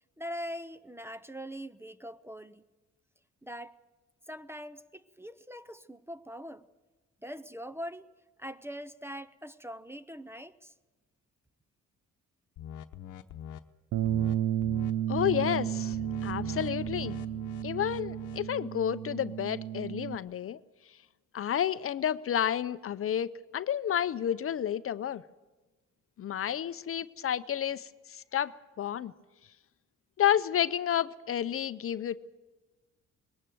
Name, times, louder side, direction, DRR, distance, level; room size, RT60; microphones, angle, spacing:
voice 1, 0.2-2.7 3.4-3.8 4.3-6.7 7.2-8.1 8.4-10.7, equal, 10° right, 15 dB, 0.6 m, -42 dB
sound 1, 12.6-13.6 14.0-14.3 14.6-14.9 15.2-18.5, left 11 dB, 80° left, 0.9 m, -44 dB
Bass guitar, 13.9-20.2, right 11 dB, 75° right, 0.7 m, -32 dB
voice 2, 15.1-16.0 16.2-17.2 17.6-20.6 21.3-25.2 26.2-28.5 28.8-29.1 30.2-32.2, left 10 dB, 50° left, 14 dB, 0.6 m, -30 dB
20.5 x 18.0 x 7.7 m, 1.2 s
cardioid pair, 90°, 30 cm